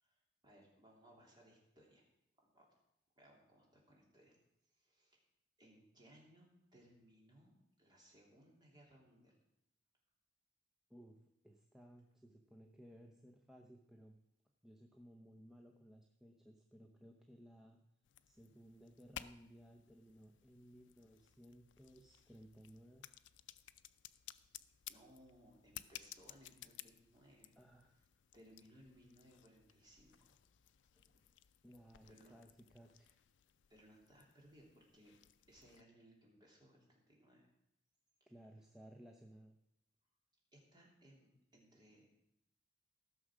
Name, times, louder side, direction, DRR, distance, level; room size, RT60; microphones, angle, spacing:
voice 1, 0.0-2.0 2.4-2.6 3.1-4.4 4.7-5.2 5.6-9.4 24.9-27.5 27.8-28.0 28.3-30.4 32.1-32.3 33.7-35.2 35.5-37.5 40.5-42.2, equal, 25° right, -2 dB, 3.1 m, -65 dB
voice 2, 10.9-14.2 14.6-17.8 18.3-23.1 27.6-28.0 31.6-33.2 38.2-39.6, equal, 5° right, 2 dB, 0.7 m, -60 dB
sound 1, 18.0-35.8, left 11 dB, 70° left, 0.4 m, -58 dB
15.0 x 6.3 x 6.2 m, 0.82 s
head